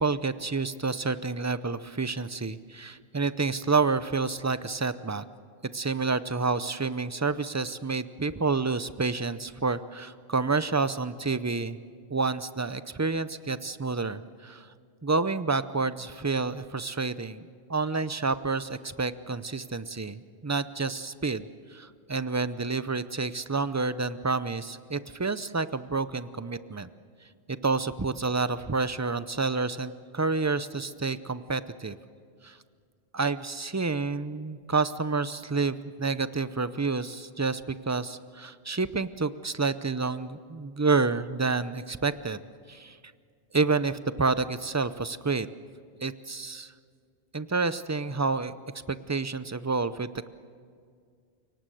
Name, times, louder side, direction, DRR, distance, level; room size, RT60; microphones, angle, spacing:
voice 1, 0.0-5.2 5.7-11.8 12.1-14.7 15.0-17.4 17.7-26.9 27.5-32.0 32.4-32.6 33.1-42.4 42.7-43.0 43.5-45.5 46.0-46.7 47.3-48.5 48.9-50.3, right 4 dB, 20° right, 13 dB, 0.5 m, -29 dB
29.5 x 18.5 x 7.8 m, 2.1 s
omnidirectional pair, 1.1 m